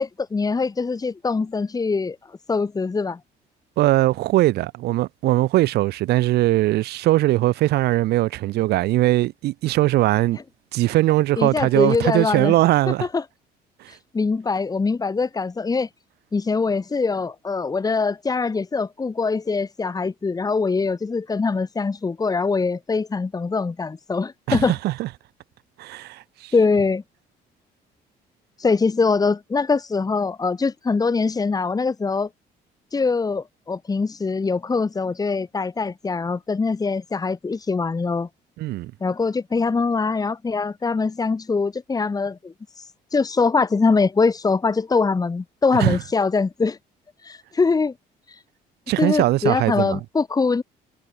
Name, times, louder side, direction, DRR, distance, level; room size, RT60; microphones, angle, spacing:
voice 1, 0.0-2.2 2.5-3.2 11.4-12.5 13.0-13.2 14.1-15.9 16.3-24.7 26.5-27.0 28.6-32.3 32.9-38.3 39.0-42.5 43.1-46.8 47.2-47.9 49.0-50.6, left 4 dB, 20° left, 2.3 m, -23 dB
voice 2, 3.8-10.4 10.7-13.1 13.8-13.9 24.5-25.1 25.8-26.5 38.6-38.9 45.8-46.0 48.9-50.0, right 16 dB, 75° right, 1.0 m, -20 dB
cardioid pair, 110°, 17 cm